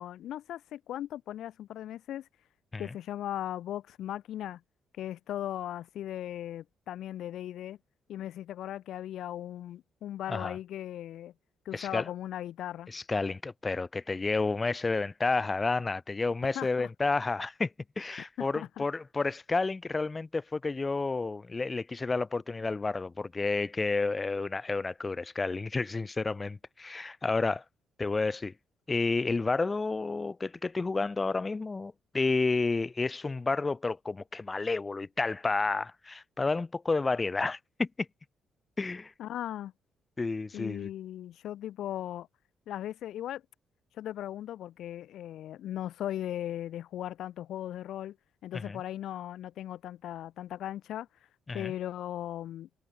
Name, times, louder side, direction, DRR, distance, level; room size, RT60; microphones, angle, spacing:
voice 1, 0.0-2.3 2.8-4.6 5.0-7.8 8.1-11.3 11.6-12.9 16.5-16.9 18.4-18.8 39.2-39.7 40.5-42.3 42.7-43.4 44.0-48.1 48.4-51.1 51.5-52.7, left 12 dB, 75° left, 6.6 m, -38 dB
voice 2, 11.7-12.1 12.9-17.7 18.0-27.6 28.0-28.5 28.9-37.9 38.8-39.1 40.2-40.9 48.5-48.8 51.5-51.7, left 3 dB, 25° left, 5.3 m, -30 dB
cardioid pair, 90°, 0 cm